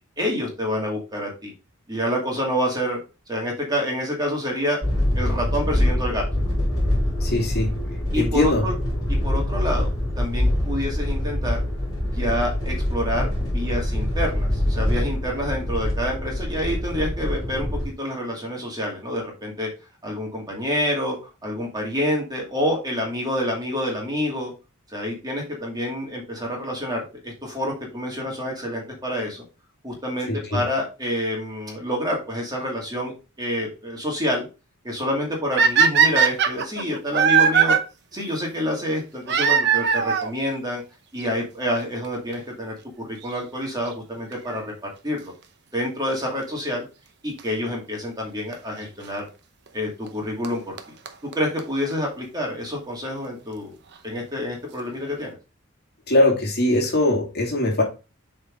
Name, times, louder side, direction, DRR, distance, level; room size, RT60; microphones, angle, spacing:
voice 1, 0.2-1.5 1.9-3.0 3.3-4.8 5.1-6.2 8.1-8.8 9.1-9.9 10.2-11.6 12.1-19.7 20.0-21.2 21.4-24.5 24.9-29.4 29.8-33.1 33.4-34.5 34.8-37.8 38.1-40.8 41.1-45.3 45.7-46.8 47.2-49.3 49.7-50.8 51.3-53.7 54.0-55.3, equal, 20° right, -1 dB, 2.4 m, -27 dB
sound 1, 4.8-17.9, left 1 dB, 20° left, 4.0 m, -24 dB
voice 2, 7.2-7.7 8.2-8.6 30.3-30.6 56.1-57.8, left 1 dB, 50° left, -1 dB, 2.5 m, -21 dB
sound 2, 35.6-37.8 39.3-40.3 41.3-41.4 42.0-42.1 42.3-42.4 44.3-44.6 47.4-47.5 48.5-48.6 50.1-50.2 50.4-50.5 50.8-50.9 51.1-51.2 51.3-51.4 51.6-51.7 51.9-52.0, right 6 dB, 55° right, 0.9 m, -18 dB
7.8 x 4.4 x 3.7 m, 0.30 s
head